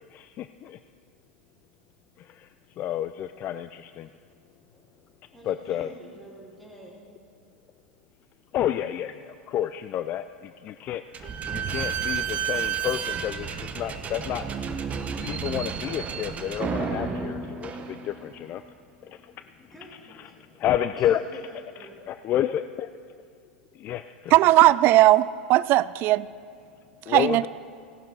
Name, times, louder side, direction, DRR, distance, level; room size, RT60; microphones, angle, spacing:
voice 1, 0.1-0.8 2.8-4.1 5.4-5.9 8.5-11.0 11.5-14.5 15.2-18.6 20.6-21.4 22.1-22.9 23.8-24.4 27.1-27.5, left 11 dB, 35° left, 12 dB, 0.4 m, -30 dB
voice 2, 4.6-7.1 19.6-20.7 21.0-22.1, equal, ahead, -6 dB, 3.1 m, -48 dB
Slam / Squeak, 11.1-18.4, right 7 dB, 25° right, 0.9 m, -31 dB
voice 3, 24.3-26.3 27.1-27.5, right 16 dB, 45° right, 18 dB, 0.3 m, -18 dB
17.0 x 11.5 x 4.6 m, 2.2 s
hypercardioid pair, 95°, 5 cm